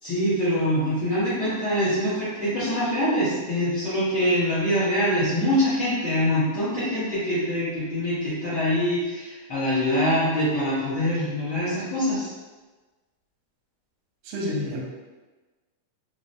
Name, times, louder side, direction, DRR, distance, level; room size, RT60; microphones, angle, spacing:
voice 1, 0.0-12.3 14.5-14.7, equal, 85° left, -14 dB, 0.9 m, -24 dB
voice 2, 14.2-14.9, right 1 dB, 75° right, -4 dB, 1.4 m, -30 dB
5.8 x 2.0 x 2.6 m, 1.3 s
omnidirectional pair, 3.7 m